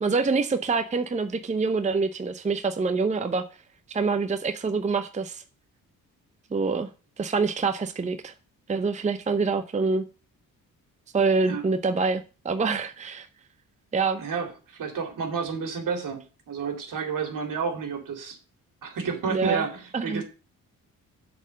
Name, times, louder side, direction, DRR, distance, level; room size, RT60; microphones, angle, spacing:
voice 1, 0.0-3.4 3.9-5.4 6.5-6.9 7.2-8.3 8.7-10.0 11.1-13.3 13.9-14.2 19.3-19.6 19.9-20.2, right 4 dB, 20° right, 8 dB, 0.6 m, -26 dB
voice 2, 14.2-18.4 18.8-20.2, right 5 dB, 65° right, 4 dB, 2.4 m, -30 dB
7.8 x 4.4 x 6.3 m, 0.34 s
cardioid pair, 85°, 35 cm